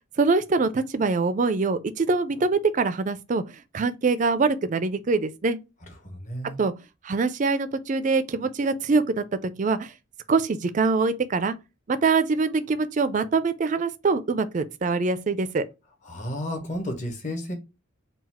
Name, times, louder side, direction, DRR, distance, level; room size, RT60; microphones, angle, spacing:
voice 1, 0.2-3.4 3.7-5.6 6.6-6.7 7.0-9.2 9.6-9.9 10.3-11.6 11.9-15.6, right 4 dB, 35° right, 0.4 m, -24 dB
voice 2, 6.0-6.6 16.0-17.5, left 1 dB, 35° left, 1.0 m, -32 dB
3.9 x 2.3 x 4.2 m
head